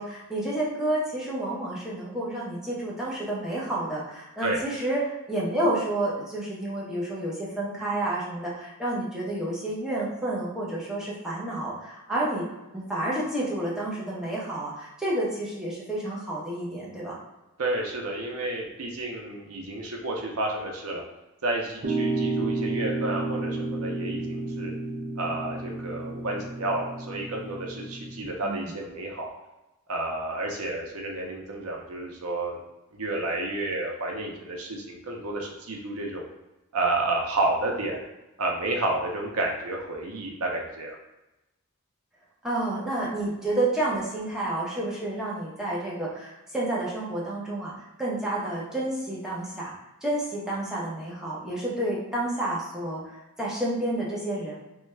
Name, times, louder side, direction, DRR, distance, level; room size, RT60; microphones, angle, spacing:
voice 1, 0.0-12.5 12.7-17.2 28.4-28.7 42.4-49.7 50.0-53.0 53.4-54.6, right 1 dB, 5° right, -7 dB, 0.8 m, -30 dB
voice 2, 17.6-21.0 21.4-24.7 25.2-29.3 29.9-32.6 32.9-36.2 36.7-38.0 38.4-41.0, right 2 dB, 90° right, 0 dB, 0.7 m, -30 dB
sound 1, 21.8-28.2, right 2 dB, 45° right, 0.5 m, -31 dB
3.2 x 2.3 x 3.2 m, 0.99 s
head